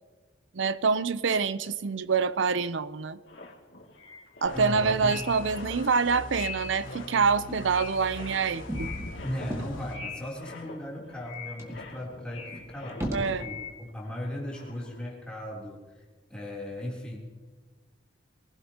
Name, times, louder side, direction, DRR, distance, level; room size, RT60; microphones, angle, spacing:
voice 1, 0.5-3.2 4.4-8.9 13.1-13.5, right 5 dB, 70° right, 0.6 m, -26 dB
sound 1, 3.2-14.2 14.5-15.0, left 5 dB, 65° left, 2.5 m, -43 dB
sound 2, 4.4-10.0, left 1 dB, 85° left, 3.4 m, -42 dB
voice 2, 4.5-5.3 7.5-7.6 9.2-15.8 16.3-17.2, left 1 dB, 5° left, 3.4 m, -37 dB
sound 3, 8.6-10.2 10.7-10.8 11.0-11.1 11.6-13.6, right 1 dB, 15° right, 1.8 m, -37 dB
23.5 x 16.5 x 2.9 m
head